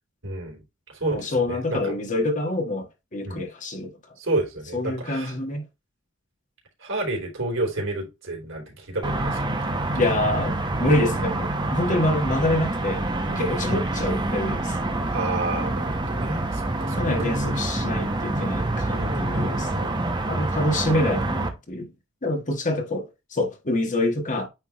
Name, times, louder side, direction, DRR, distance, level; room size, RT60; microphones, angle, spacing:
voice 1, 0.2-0.6 1.0-1.8 3.2-3.4 4.2-5.3 6.8-9.7 13.3-13.9 15.0-17.3 18.9-20.1, right 2 dB, 80° right, 3.5 m, -30 dB
voice 2, 1.1-4.0 4.7-5.6 9.9-14.9 16.9-20.0 20.3-21.9 22.2-24.5, left 1 dB, 40° left, 1.5 m, -26 dB
sound 1, 9.0-21.5, right 2 dB, 25° right, 1.0 m, -26 dB
9.2 x 3.4 x 3.0 m
head